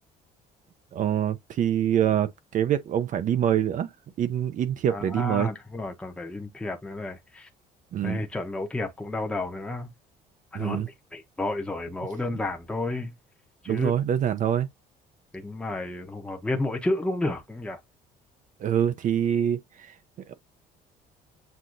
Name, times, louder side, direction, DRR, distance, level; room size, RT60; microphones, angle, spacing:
voice 1, 0.9-3.9 4.2-5.5 7.9-8.2 10.5-10.9 13.7-14.7 18.6-19.9 20.3-20.4, right 10 dB, 50° right, 0.5 m, -25 dB
voice 2, 4.9-7.5 8.0-9.9 10.5-13.1 13.6-13.9 15.3-17.8, left 2 dB, 5° left, 0.8 m, -31 dB
7.7 x 2.6 x 2.5 m
cardioid pair, 110°, 17 cm